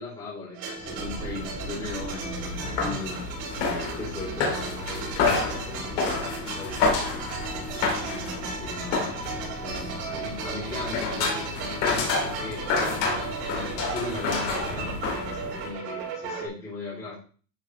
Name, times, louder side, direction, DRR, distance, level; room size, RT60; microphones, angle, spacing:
voice 1, 0.0-3.2 3.6-9.1 9.6-12.6 13.0-17.1, left 2 dB, 10° left, -10 dB, 3.0 m, -38 dB
sound 1, 0.5-16.5, right 4 dB, 70° right, 4.7 m, -36 dB
sound 2, 0.8-15.7, left 3 dB, 35° left, 2.7 m, -30 dB
12.0 x 4.7 x 3.1 m, 0.40 s
supercardioid pair, 170°, 50 cm